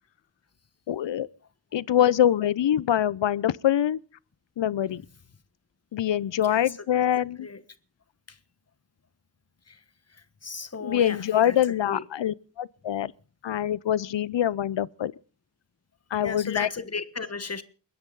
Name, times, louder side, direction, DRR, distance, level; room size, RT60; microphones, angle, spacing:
voice 1, 0.9-1.3 1.7-4.0 4.6-5.0 5.9-7.5 10.8-13.1 13.4-15.1 16.1-16.7, left 11 dB, 70° left, 0.7 m, -24 dB
voice 2, 6.4-7.0 7.4-7.6 8.3-8.4 9.7-9.8 10.1-11.6 11.8-12.0 16.2-17.6, left 4 dB, 35° left, 1.3 m, -35 dB
29.5 x 10.5 x 4.0 m
wide cardioid pair, 150°, 45 cm